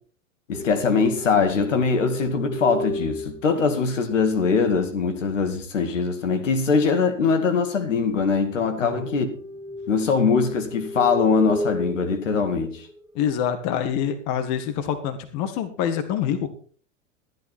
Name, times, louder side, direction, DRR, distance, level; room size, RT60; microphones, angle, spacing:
voice 1, 0.5-9.3 9.9-12.9, left 5 dB, 75° left, 2.2 m, -22 dB
sound 1, 0.5-4.2 8.7-13.1, equal, 10° right, 1.4 m, -33 dB
voice 2, 13.2-16.5, left 9 dB, 45° left, 1.8 m, -26 dB
13.5 x 12.0 x 4.4 m
figure-of-eight pair, 95°, 38 cm